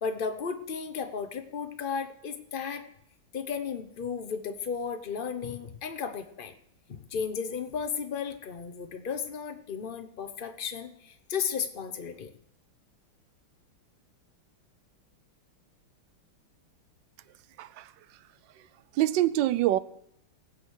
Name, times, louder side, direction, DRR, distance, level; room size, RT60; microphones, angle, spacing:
voice 1, 0.0-2.8 3.3-6.5 6.9-12.3, left 6 dB, 70° left, 0.5 m, -34 dB
voice 2, 19.0-19.8, right 14 dB, 70° right, 1.3 m, -25 dB
18.5 x 8.3 x 6.4 m
omnidirectional pair, 2.3 m